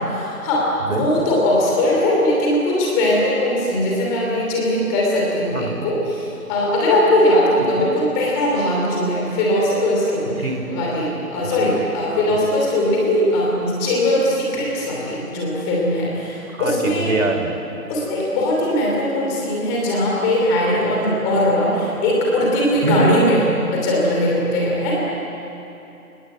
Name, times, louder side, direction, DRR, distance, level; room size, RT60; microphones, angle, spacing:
voice 1, 0.2-17.2 17.9-23.4 23.7-25.0, left 1 dB, 10° left, -3 dB, 2.9 m, -20 dB
voice 2, 0.8-1.3 5.5-5.9 7.6-7.9 10.4-10.6 11.4-11.8 12.3-12.4 16.6-17.5 22.8-23.2, right 3 dB, 60° right, 5 dB, 4.2 m, -24 dB
27.0 x 19.5 x 8.1 m, 2.9 s
hypercardioid pair, 170°, 46 cm